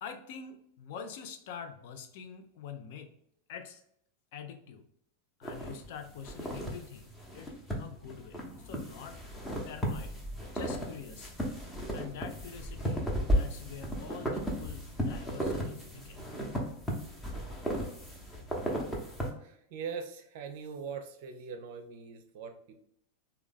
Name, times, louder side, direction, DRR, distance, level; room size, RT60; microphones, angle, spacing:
voice 1, 0.0-3.1 3.5-3.8 4.3-4.9 5.4-7.1 7.3-9.2 9.7-11.3 11.9-16.2, left 7 dB, 50° left, 7 dB, 0.5 m, -45 dB
sound 1, 5.4-19.3, equal, 10° left, 0.8 m, -35 dB
voice 2, 19.4-22.8, right 6 dB, 50° right, 7 dB, 0.5 m, -42 dB
3.4 x 2.3 x 3.6 m, 0.73 s
figure-of-eight pair, 90°, 0 cm